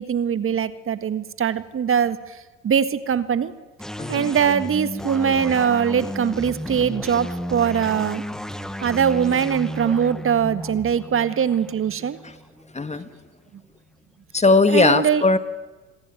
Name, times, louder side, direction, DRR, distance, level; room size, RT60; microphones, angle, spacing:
voice 1, 0.0-2.2 2.6-3.5 4.1-8.2 8.8-12.2 14.7-15.2, right 8 dB, 35° right, 13 dB, 1.7 m, -22 dB
sound 1, 3.8-13.2, equal, ahead, 1.5 m, -33 dB
voice 2, 4.0-4.3 12.2-12.3 12.7-13.1 14.3-15.4, left 3 dB, 20° left, 12 dB, 1.6 m, -18 dB
28.5 x 21.0 x 9.2 m, 1.2 s
hypercardioid pair, 65°, 37 cm